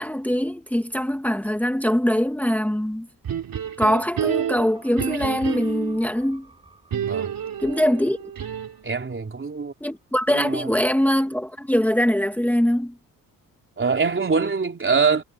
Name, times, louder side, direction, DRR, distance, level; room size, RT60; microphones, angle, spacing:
voice 1, 0.0-3.1 3.8-6.5 7.6-8.2 9.8-12.9, equal, 5° left, 2.3 m, -22 dB
sound 1, 3.2-6.0 6.9-8.9, right 9 dB, 65° right, 4.3 m, -29 dB
sound 2, 4.7-9.4 9.8-9.9, right 3 dB, 15° right, 7.5 m, -54 dB
voice 2, 7.0-7.3 8.8-9.7 10.3-10.7 13.8-15.2, right 5 dB, 35° right, 3.7 m, -23 dB
cardioid pair, 85°, 37 cm